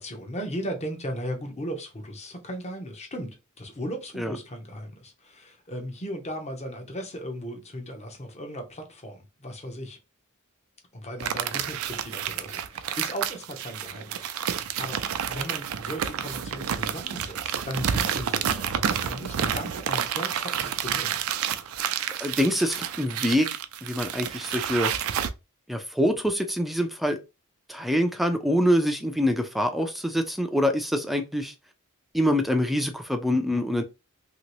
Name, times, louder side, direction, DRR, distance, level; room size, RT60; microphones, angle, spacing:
voice 1, 0.0-10.0 10.9-15.0 15.3-21.2, equal, 30° left, 0.8 m, -37 dB
sound 1, 11.2-25.3, right 8 dB, 80° right, 0.4 m, -29 dB
voice 2, 22.2-23.5 23.8-24.9 25.7-27.2 27.7-31.5 32.1-33.8, equal, ahead, 0.4 m, -25 dB
2.9 x 2.9 x 3.0 m
head